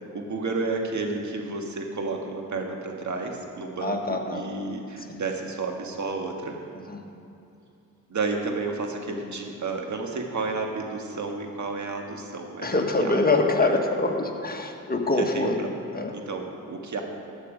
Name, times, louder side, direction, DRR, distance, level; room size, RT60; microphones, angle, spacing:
voice 1, 0.1-4.0 4.3-6.6 8.1-13.7 15.0-15.5 16.1-17.0, right 3 dB, 55° right, 2 dB, 1.8 m, -31 dB
voice 2, 3.8-4.5 5.0-5.2 6.7-7.1 12.6-15.7 15.9-16.1, left 2 dB, 25° left, 2 dB, 1.6 m, -25 dB
14.0 x 8.4 x 5.2 m, 2.6 s
supercardioid pair, 55°, 34 cm